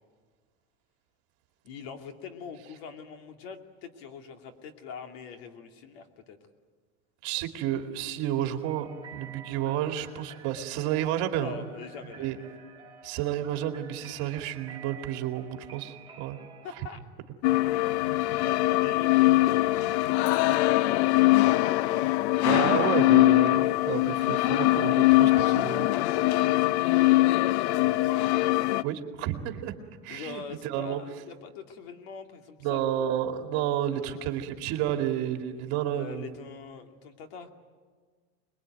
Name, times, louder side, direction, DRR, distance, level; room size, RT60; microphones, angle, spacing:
voice 1, 1.6-6.4 11.4-12.4 16.6-17.0 18.2-21.2 25.5-28.2 30.1-33.1 33.9-34.3 35.9-37.5, left 6 dB, 65° left, 5 dB, 2.6 m, -44 dB
voice 2, 7.2-11.6 12.2-12.4 13.0-16.4 17.5-17.6 22.4-25.9 28.8-29.7 30.0-31.0 32.6-36.4, right 11 dB, 50° right, 5 dB, 2.4 m, -31 dB
sound 1, 8.6-17.0, right 6 dB, 15° right, 2.5 m, -50 dB
sound 2, 17.4-28.8, left 18 dB, 90° left, 0.7 m, -22 dB
25.5 x 21.5 x 9.2 m, 1.5 s
supercardioid pair, 160°, 33 cm